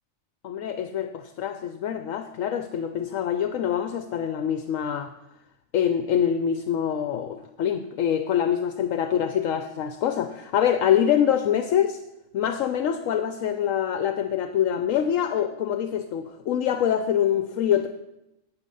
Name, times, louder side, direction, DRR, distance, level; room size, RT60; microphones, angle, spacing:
voice 1, 0.4-5.1 5.7-12.0 12.3-17.9, left 9 dB, 70° left, 8 dB, 1.0 m, -25 dB
11.0 x 8.1 x 5.4 m, 0.89 s
omnidirectional pair, 1.5 m